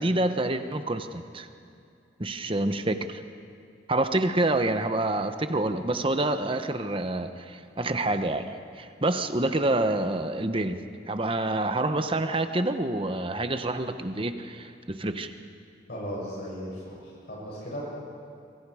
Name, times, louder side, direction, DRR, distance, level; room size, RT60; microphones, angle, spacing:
voice 1, 0.0-1.5 2.2-3.2 3.9-8.5 8.8-15.3, right 2 dB, 30° right, 8 dB, 1.0 m, -27 dB
voice 2, 15.9-17.9, equal, 60° left, -6 dB, 7.5 m, -36 dB
27.0 x 24.0 x 5.0 m, 2.5 s
head